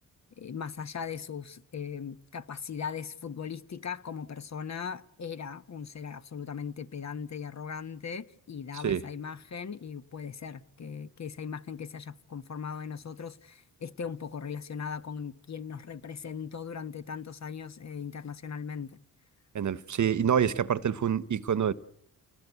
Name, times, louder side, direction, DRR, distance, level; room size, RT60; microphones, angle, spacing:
voice 1, 0.4-19.0, left 6 dB, 50° left, 1.2 m, -39 dB
voice 2, 19.5-21.7, right 8 dB, 55° right, 1.0 m, -26 dB
30.0 x 19.0 x 8.2 m
cardioid pair, 80°, 35 cm